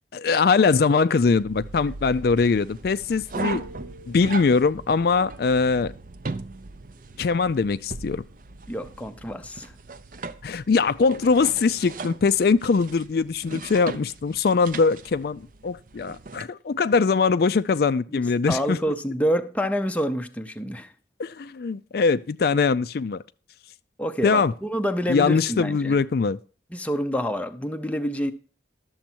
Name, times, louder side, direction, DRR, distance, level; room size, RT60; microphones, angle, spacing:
voice 1, 0.1-3.6 4.1-5.9 7.2-8.2 10.4-18.8 21.2-23.2 24.2-24.5 25.1-26.4, left 4 dB, 55° left, 0.4 m, -22 dB
sound 1, 1.2-16.4, right 3 dB, 45° right, 0.6 m, -38 dB
voice 2, 8.7-9.7 18.1-18.2 18.5-20.9 24.0-26.0 26.7-28.3, equal, 5° left, 0.6 m, -27 dB
11.5 x 7.2 x 4.4 m
head